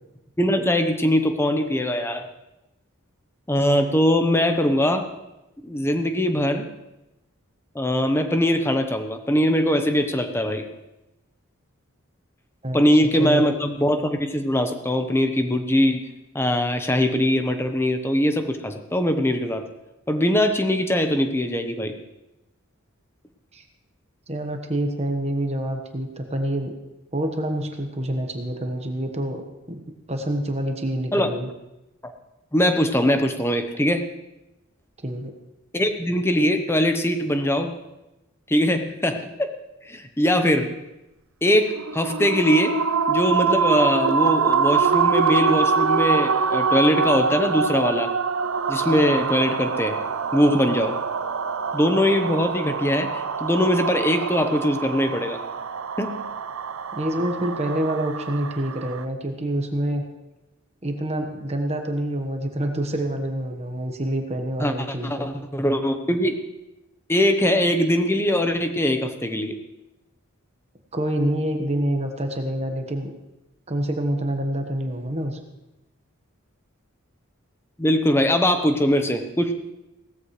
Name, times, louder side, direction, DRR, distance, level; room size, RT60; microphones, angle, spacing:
voice 1, 0.4-2.3 3.5-5.1 5.6-6.7 7.7-10.6 12.7-16.1 16.3-19.6 20.1-21.9 31.1-31.3 32.5-34.0 35.7-37.7 38.5-39.5 39.9-40.7 41.4-42.8 43.1-48.1 48.7-50.0 50.3-51.0 51.7-55.4 56.0-56.2 64.6-66.3 67.1-69.5 77.8-79.5, equal, 10° left, 7 dB, 0.9 m, -21 dB
voice 2, 24.3-26.7 27.1-29.4 29.7-29.8 30.1-31.5 35.0-35.3 56.9-60.0 60.8-65.3 70.9-73.1 73.7-75.4, right 1 dB, 30° right, 3 dB, 1.3 m, -27 dB
sound 1, 41.7-59.0, right 5 dB, 75° right, 0.6 m, -24 dB
17.5 x 14.0 x 3.2 m, 0.96 s
head